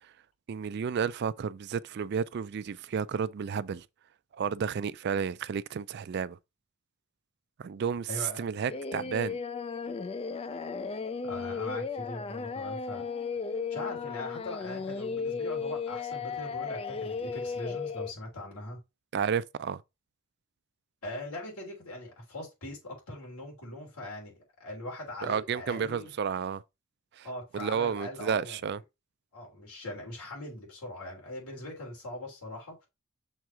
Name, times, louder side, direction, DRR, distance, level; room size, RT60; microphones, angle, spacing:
voice 1, 0.5-3.8 4.4-6.4 7.6-8.1 8.4-9.4 19.1-19.8 25.2-26.6 27.2-27.3 27.5-28.8, right 7 dB, 50° right, 0.3 m, -31 dB
voice 2, 8.1-8.5 11.2-13.0 13.5-18.8 21.0-26.1 27.2-28.6 29.3-32.9, left 1 dB, 90° left, 3.3 m, -41 dB
Singing, 8.7-18.1, left 5 dB, 25° left, 0.3 m, -35 dB
6.3 x 3.6 x 4.4 m
head